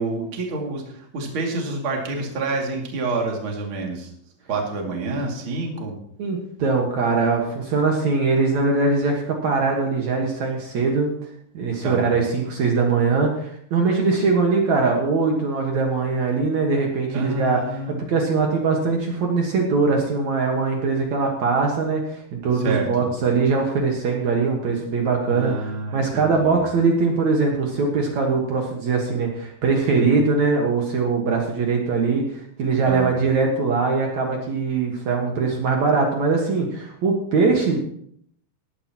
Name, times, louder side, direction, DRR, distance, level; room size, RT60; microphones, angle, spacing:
voice 1, 0.0-4.1 4.5-5.9 11.8-12.1 17.1-18.0 22.5-23.1 25.3-26.6 29.9-30.2 32.8-33.1, right 3 dB, 35° right, 0 dB, 2.3 m, -28 dB
voice 2, 6.2-11.1 11.5-17.6 18.1-37.8, right 4 dB, 70° right, 1 dB, 1.7 m, -21 dB
18.0 x 11.5 x 3.0 m, 0.67 s
omnidirectional pair, 5.6 m